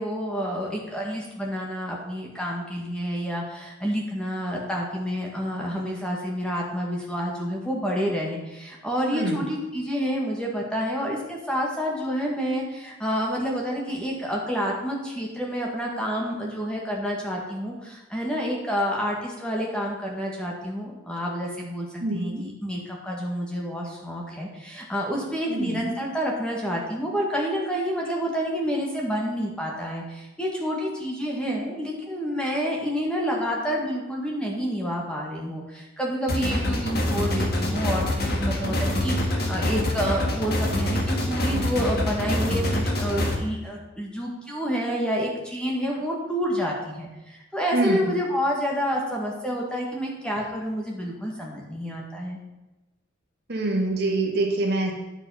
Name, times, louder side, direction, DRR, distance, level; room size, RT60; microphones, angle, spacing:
voice 1, 0.0-52.4, equal, 5° left, -2 dB, 1.6 m, -29 dB
voice 2, 22.0-22.4 25.5-25.9 47.7-48.1 53.5-54.9, right 2 dB, 55° right, 1 dB, 1.8 m, -25 dB
sound 1, 36.3-43.3, left 1 dB, 50° left, 1.7 m, -25 dB
10.0 x 7.2 x 5.6 m, 1.0 s
head